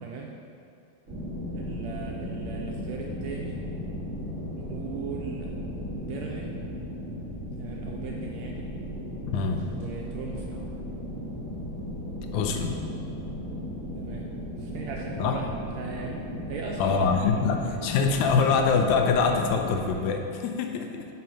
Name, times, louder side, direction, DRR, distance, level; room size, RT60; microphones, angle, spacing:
voice 1, 0.0-0.4 1.5-3.6 4.5-5.5 6.0-6.6 7.6-8.7 9.8-10.6 13.9-14.3 14.6-17.1 17.4-17.8 20.8-20.9, right 5 dB, 80° right, -1 dB, 1.6 m, -38 dB
sound 1, 1.1-20.0, equal, 55° right, 0.8 m, -36 dB
voice 2, 9.3-9.7 12.3-12.8 15.2-15.4 16.8-21.1, left 5 dB, 80° left, 4 dB, 1.9 m, -24 dB
sound 2, 9.3-11.0, right 3 dB, 25° left, 1.7 m, -50 dB
7.5 x 3.8 x 5.6 m, 2.5 s
omnidirectional pair, 3.5 m